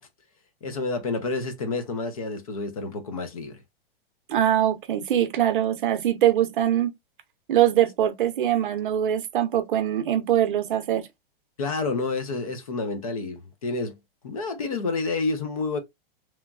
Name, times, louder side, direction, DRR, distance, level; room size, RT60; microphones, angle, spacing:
voice 1, 0.6-3.6 11.6-14.0 14.2-15.8, left 3 dB, 35° left, 0.4 m, -29 dB
voice 2, 4.3-6.9 7.5-11.1, right 11 dB, 55° right, 0.6 m, -22 dB
3.0 x 2.2 x 2.3 m
supercardioid pair, 180°, 30 cm